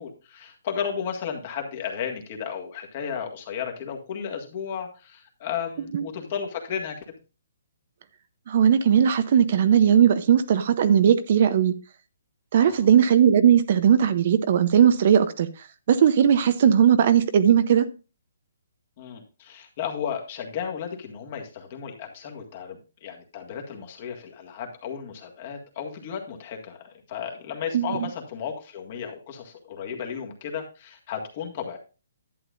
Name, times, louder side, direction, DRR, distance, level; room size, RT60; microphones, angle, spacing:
voice 1, 0.0-7.2 12.6-12.9 19.0-31.8, left 7 dB, 35° left, 1.8 m, -34 dB
voice 2, 8.5-11.7 12.5-15.5 15.9-17.9 27.7-27.9, right 8 dB, 45° right, 0.6 m, -18 dB
11.0 x 8.8 x 2.5 m
hypercardioid pair, 165°, 0 cm